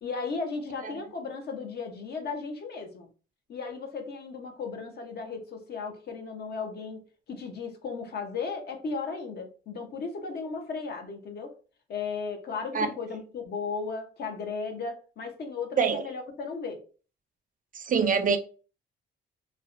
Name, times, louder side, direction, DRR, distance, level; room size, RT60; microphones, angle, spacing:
voice 1, 0.0-3.1 3.5-11.6 11.9-16.8, left 4 dB, 55° left, 0.7 m, -35 dB
voice 2, 17.7-18.4, right 6 dB, 45° right, 0.4 m, -24 dB
2.5 x 2.1 x 2.4 m
cardioid pair, 90°, 20 cm